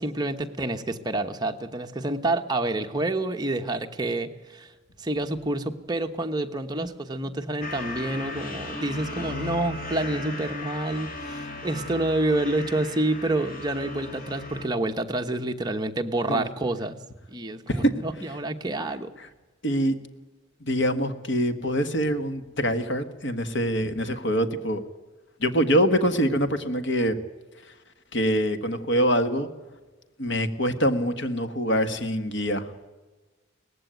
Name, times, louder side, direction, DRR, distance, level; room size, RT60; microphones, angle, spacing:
voice 1, 0.0-4.7 5.0-17.0 17.3-19.1, right 2 dB, 20° right, 5 dB, 1.1 m, -28 dB
sound 1, 7.6-14.7, left 2 dB, 40° left, 2.5 m, -36 dB
voice 2, 19.6-19.9 20.6-24.8 25.4-27.1 28.1-29.5 30.2-32.6, equal, 60° left, 9 dB, 1.6 m, -24 dB
18.5 x 15.5 x 9.2 m, 1.2 s
head